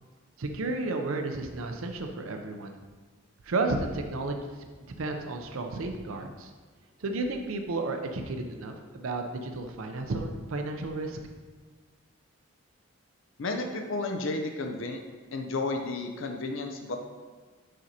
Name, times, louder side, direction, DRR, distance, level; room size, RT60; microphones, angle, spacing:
voice 1, 0.4-2.8 3.4-4.4 5.0-6.5 7.0-11.2, right 2 dB, 90° right, 4 dB, 0.6 m, -32 dB
voice 2, 13.4-15.0 15.3-17.0, left 2 dB, 70° left, 5 dB, 0.5 m, -32 dB
7.5 x 5.2 x 2.8 m, 1.5 s
head